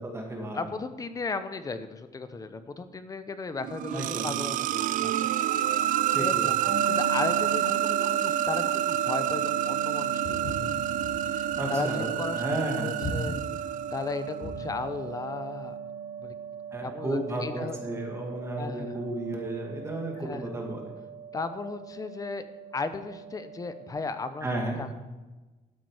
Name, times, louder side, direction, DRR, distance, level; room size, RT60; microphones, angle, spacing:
voice 1, 0.0-0.6 3.9-4.3 6.1-6.5 11.6-12.9 16.7-20.8 24.4-24.8, right 1 dB, 20° right, 0 dB, 2.2 m, -33 dB
voice 2, 0.5-5.3 5.7-10.7 11.2-12.4 12.8-13.4 13.9-15.8 16.2-16.3 16.8-17.8 18.6-19.0 20.2-20.6 21.3-22.4 22.7-24.5 24.8-24.9, left 4 dB, 25° left, 11 dB, 0.7 m, -35 dB
sound 1, 3.6-14.3, right 12 dB, 65° right, 0.4 m, -29 dB
sound 2, 6.6-23.9, right 7 dB, 85° right, 4.1 m, -36 dB
Walk footsteps, 10.2-14.7, left 1 dB, 50° left, 3.6 m, -38 dB
12.5 x 8.4 x 4.9 m, 1.2 s
cardioid pair, 145°, 15 cm